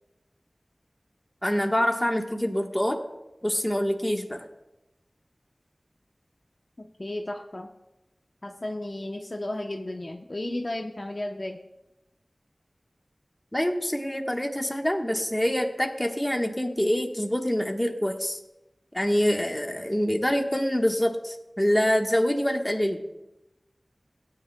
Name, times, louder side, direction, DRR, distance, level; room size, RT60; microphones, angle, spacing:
voice 1, 1.4-3.0 3.4-4.4 13.5-18.4 18.9-23.0, equal, 15° left, 3 dB, 1.3 m, -25 dB
voice 2, 6.8-7.7 8.4-11.6, left 1 dB, 45° left, 2 dB, 0.8 m, -34 dB
16.5 x 9.8 x 2.3 m, 0.97 s
wide cardioid pair, 45°, 0 cm